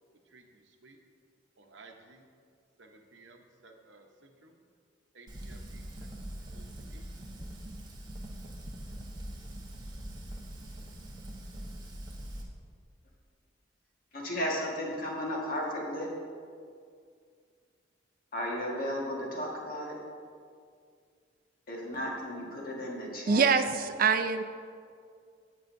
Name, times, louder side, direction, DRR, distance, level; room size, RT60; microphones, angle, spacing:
voice 1, 0.3-1.0 1.6-2.2 2.8-4.6 5.1-6.1 6.5-7.1, right 3 dB, 70° right, 3 dB, 0.9 m, -56 dB
Fire, 5.3-12.4, right 1 dB, 20° right, 1.0 m, -43 dB
voice 2, 14.1-16.1 18.3-20.0 21.7-23.4, equal, 50° left, -2 dB, 1.6 m, -34 dB
voice 3, 23.3-24.4, right 5 dB, 45° right, 8 dB, 0.4 m, -24 dB
16.5 x 5.6 x 2.6 m, 2.2 s
head